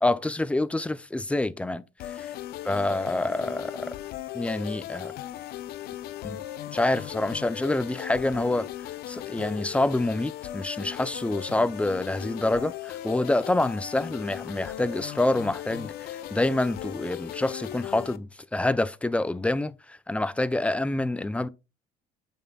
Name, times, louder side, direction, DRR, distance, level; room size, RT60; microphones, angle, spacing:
voice 1, 0.0-2.3 2.6-3.9 4.3-5.1 6.2-6.4 6.7-21.5, left 2 dB, 10° left, 0.4 m, -27 dB
sound 1, 2.0-18.2, left 13 dB, 75° left, 0.7 m, -37 dB
9.0 x 5.5 x 2.3 m
cardioid pair, 115°, 16 cm